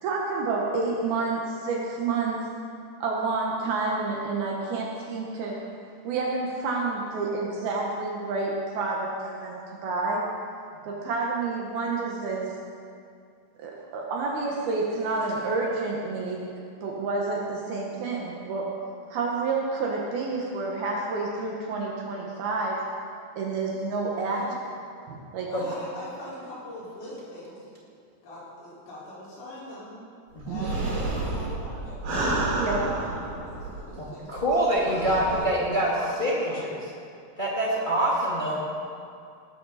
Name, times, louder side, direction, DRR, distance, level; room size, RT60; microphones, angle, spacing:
voice 1, 0.0-2.4 3.0-5.6 6.0-10.3 10.8-12.5 13.6-16.5 16.8-18.7 19.1-22.8 23.4-24.5 25.1-25.5 30.5-30.7 32.6-32.9, right 3 dB, 70° right, -2 dB, 3.0 m, -29 dB
voice 2, 25.5-27.6 28.2-29.9 30.4-32.0 32.9-34.4 34.7-36.7, left 1 dB, 65° left, -9 dB, 6.7 m, -41 dB
sound 1, 30.4-34.0 34.4-34.5 34.9-35.4, right 2 dB, 50° right, 4.6 m, -30 dB
voice 3, 34.0-35.9 36.2-36.8 37.4-38.6, right 1 dB, 35° left, -6 dB, 0.8 m, -25 dB
19.5 x 13.0 x 4.2 m, 2.3 s
omnidirectional pair, 4.9 m